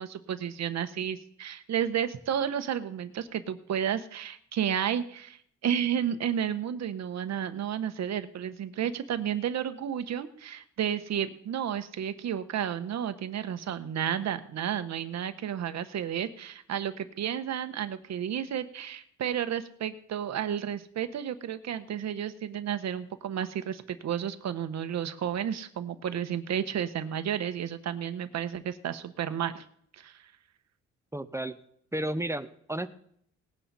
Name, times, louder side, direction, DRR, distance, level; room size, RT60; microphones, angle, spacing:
voice 1, 0.0-29.6 29.9-30.2, right 9 dB, 60° right, 10 dB, 1.1 m, -32 dB
voice 2, 31.1-31.5 31.9-32.9, right 1 dB, 10° right, 11 dB, 0.8 m, -32 dB
19.0 x 9.5 x 4.2 m, 0.66 s
cardioid pair, 90°, 30 cm